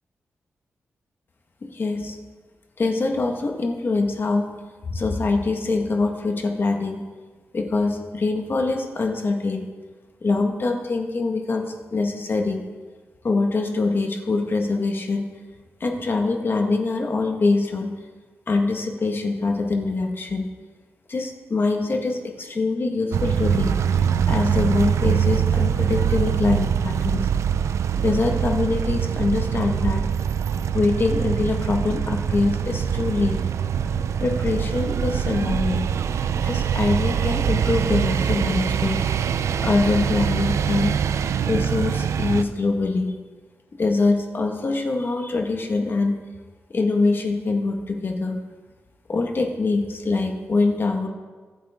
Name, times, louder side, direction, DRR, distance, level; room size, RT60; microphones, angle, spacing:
voice 1, 1.6-2.2 2.8-4.5 4.9-7.0 7.5-9.7 10.2-12.6 13.2-15.3 15.8-17.9 18.5-20.5 21.1-23.7 24.3-27.3 28.0-30.0 30.7-33.4 34.2-35.9 36.4-39.0 39.6-41.0 41.5-43.1 43.8-46.2 46.7-48.4 49.1-51.1, left 3 dB, 50° left, 3 dB, 1.6 m, -24 dB
sound 1, 23.1-42.4, right 8 dB, 90° right, 0.5 m, -23 dB
23.5 x 9.3 x 3.7 m, 1.4 s
wide cardioid pair, 95°, 5 cm